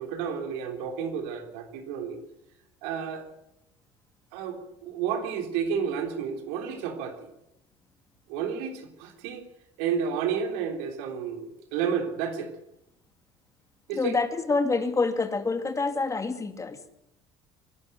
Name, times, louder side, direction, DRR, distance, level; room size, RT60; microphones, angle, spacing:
voice 1, 0.0-2.2 2.8-3.3 4.3-7.3 8.3-9.5 9.8-12.5 13.9-14.2, right 7 dB, 80° right, 4 dB, 3.4 m, -31 dB
voice 2, 13.9-16.9, left 3 dB, 25° left, 8 dB, 2.4 m, -27 dB
25.0 x 12.0 x 9.0 m, 0.84 s
supercardioid pair, 75°, 13 cm